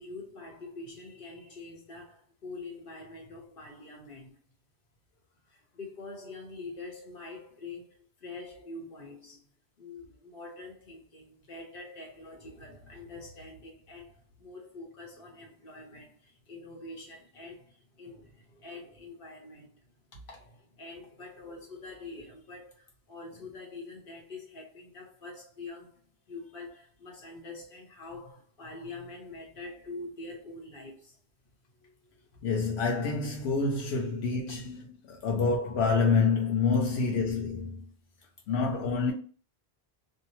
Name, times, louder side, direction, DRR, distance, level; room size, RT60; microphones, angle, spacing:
voice 1, 0.0-4.4 5.5-9.5 9.8-31.2, left 3 dB, 60° left, 1.1 m, -45 dB
voice 2, 32.4-37.9 38.5-39.1, left 4 dB, 85° left, 0.9 m, -27 dB
2.7 x 2.0 x 2.9 m
omnidirectional pair, 1.1 m